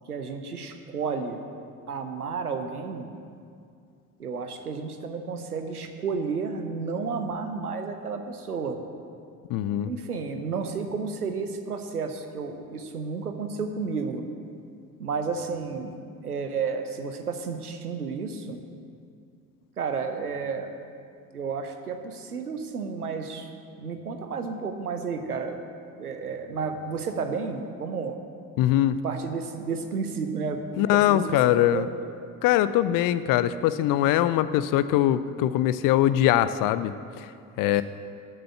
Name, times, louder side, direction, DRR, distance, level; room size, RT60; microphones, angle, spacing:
voice 1, 0.1-1.4 1.9-3.1 4.2-8.8 9.9-14.3 15.0-18.6 19.8-20.8 21.3-23.5 23.8-25.6 26.0-28.2 29.0-30.6 30.9-31.4 31.7-32.0, right 5 dB, 85° right, 6 dB, 0.9 m, -32 dB
voice 2, 9.5-9.9 28.6-29.0 30.8-31.9 32.4-37.3 37.6-37.8, left 12 dB, 50° left, 14 dB, 0.6 m, -22 dB
11.5 x 7.7 x 7.9 m, 2.4 s
figure-of-eight pair, 55°, 44 cm